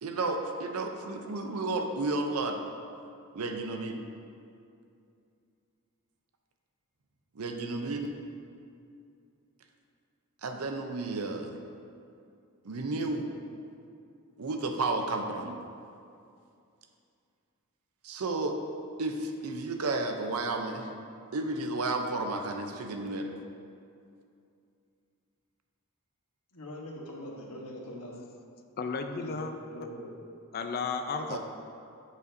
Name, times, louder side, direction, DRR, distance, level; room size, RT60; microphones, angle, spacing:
voice 1, 0.0-2.6 3.3-4.0 7.4-8.1 10.4-11.5 12.6-13.3 14.4-15.5 18.0-18.6 19.0-20.9 21.3-23.3 31.3-31.4, right 2 dB, 75° right, 4 dB, 0.6 m, -32 dB
voice 2, 26.5-28.2 29.2-29.4 29.7-30.1, left 1 dB, 90° left, -1 dB, 1.1 m, -42 dB
voice 3, 28.8-29.5 29.8-29.9 30.5-31.4, left 4 dB, 45° left, 6 dB, 0.4 m, -33 dB
8.1 x 6.7 x 2.6 m, 2.5 s
head